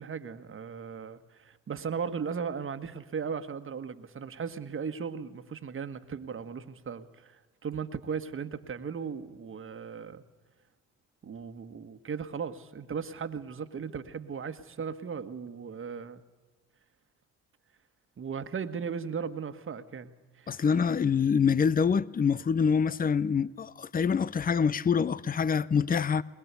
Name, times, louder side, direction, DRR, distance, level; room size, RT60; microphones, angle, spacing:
voice 1, 0.0-7.4 7.6-10.2 11.2-16.2 18.2-20.6, right 6 dB, 40° right, 1.6 m, -37 dB
voice 2, 20.5-26.2, left 6 dB, 30° left, 0.7 m, -25 dB
21.0 x 20.5 x 8.3 m
hypercardioid pair, 55°, 31 cm